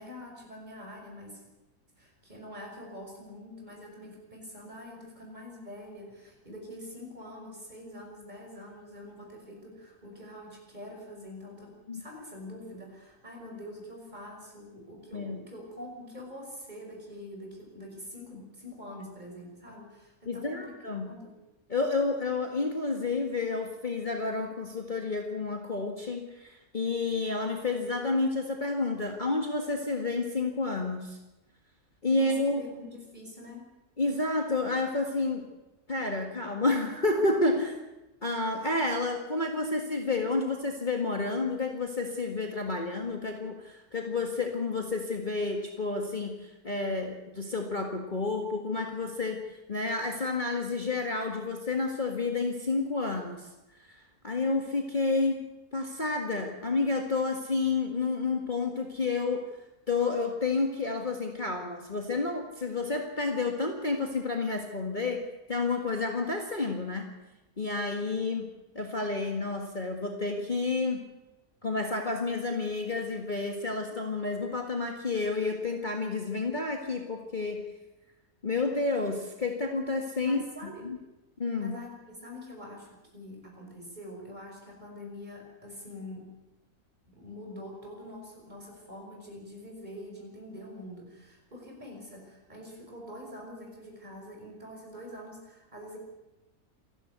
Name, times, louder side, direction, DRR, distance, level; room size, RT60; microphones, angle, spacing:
voice 1, 0.0-1.4 2.0-21.3 32.1-33.7 80.2-80.9 81.6-86.2 87.1-96.0, left 1 dB, 25° right, 0 dB, 6.2 m, -45 dB
voice 2, 20.3-21.1 21.7-31.2 32.0-32.6 34.0-35.4 35.9-37.8 38.2-53.5 53.8-55.4 55.7-59.4 59.9-65.2 65.5-67.1 67.6-68.5 68.8-71.0 71.6-77.6 78.4-80.4 80.8-81.0 81.4-81.7, left 3 dB, 30° left, 2 dB, 1.9 m, -30 dB
27.5 x 12.0 x 8.1 m, 1.0 s
omnidirectional pair, 1.7 m